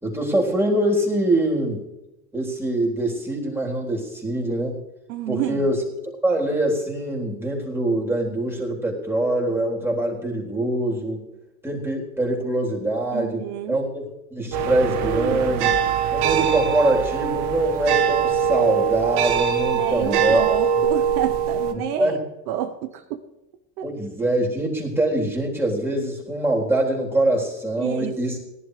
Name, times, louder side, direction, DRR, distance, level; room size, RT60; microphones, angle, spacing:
voice 1, 0.0-1.8 2.3-4.8 5.3-11.2 11.6-14.0 14.3-15.8 16.1-20.4 21.7-22.2 23.8-28.4, right 1 dB, 5° right, -3 dB, 3.8 m, -24 dB
voice 2, 5.1-5.6 13.1-13.8 19.7-22.2 22.5-23.0 23.8-23.9 27.8-28.1, right 11 dB, 75° right, 7 dB, 1.1 m, -29 dB
sound 1, 14.5-21.7, right 8 dB, 60° right, 1.4 m, -22 dB
18.5 x 11.0 x 3.3 m, 0.96 s
hypercardioid pair, 95°, 45 cm